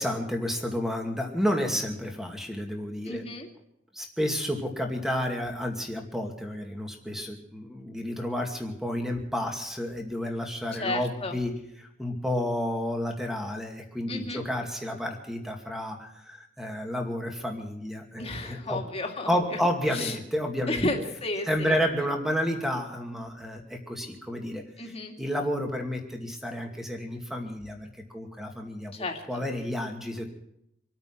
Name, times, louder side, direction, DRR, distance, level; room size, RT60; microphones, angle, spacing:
voice 1, 0.0-3.2 3.9-11.5 11.8-18.8 19.3-20.8 21.5-24.9 25.2-30.3, equal, ahead, 2 dB, 2.3 m, -31 dB
voice 2, 3.1-3.5 10.7-11.4 14.1-14.5 18.2-19.6 19.9-20.2 20.7-21.7 24.8-25.1 28.9-29.4, left 2 dB, 35° left, 2 dB, 2.4 m, -32 dB
26.5 x 9.0 x 6.0 m, 0.78 s
head